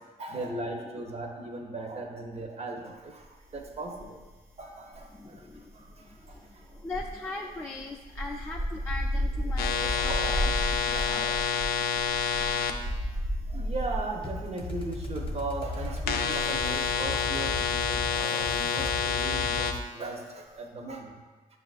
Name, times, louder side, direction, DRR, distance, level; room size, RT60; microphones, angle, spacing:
voice 1, 0.2-3.3 3.5-4.2 4.6-5.4 5.7-6.4 9.9-10.4 10.9-11.3 13.5-21.1, right 3 dB, 40° right, 2 dB, 0.7 m, -38 dB
sound 1, 3.5-4.3 4.6-18.1 18.4-18.6, equal, 80° right, 0.8 m, -34 dB
voice 2, 5.1-10.5 10.8-11.3 13.0-13.1, left 2 dB, 15° left, -2 dB, 0.3 m, -40 dB
sound 2, 9.6-12.7 16.1-19.7, left 7 dB, 80° left, 0.4 m, -28 dB
sound 3, 14.2-19.8, left 2 dB, 35° left, 0.7 m, -37 dB
7.2 x 2.4 x 2.4 m, 1.3 s
cardioid pair, 80°, 16 cm